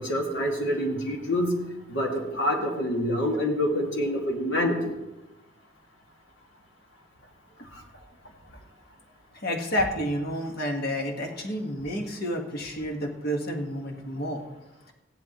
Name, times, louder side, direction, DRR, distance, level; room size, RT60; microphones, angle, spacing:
voice 1, 0.0-1.6 1.9-4.9, left 1 dB, 80° left, 1 dB, 2.2 m, -26 dB
voice 2, 9.4-14.4, equal, 55° left, 3 dB, 1.5 m, -30 dB
16.0 x 11.0 x 3.0 m, 1.0 s
head